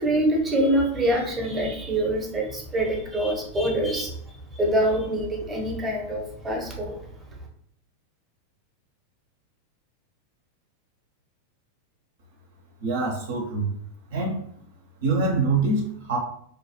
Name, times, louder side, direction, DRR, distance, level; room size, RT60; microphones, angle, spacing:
voice 1, 0.0-7.0, right 1 dB, 15° right, 0 dB, 0.7 m, -25 dB
voice 2, 12.8-13.7 14.1-14.4 15.0-16.2, right 3 dB, 55° right, 0 dB, 0.5 m, -24 dB
2.6 x 2.2 x 2.7 m, 0.67 s
figure-of-eight pair, 90°, 0 cm